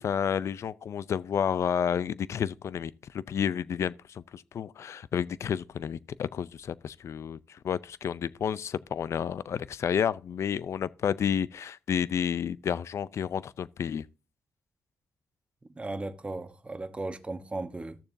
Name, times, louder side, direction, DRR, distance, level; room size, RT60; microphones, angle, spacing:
voice 1, 0.0-14.0, left 8 dB, 65° left, 0.5 m, -31 dB
voice 2, 15.7-18.0, right 2 dB, 20° right, 1.1 m, -36 dB
14.5 x 6.9 x 2.7 m
cardioid pair, 75°, 5 cm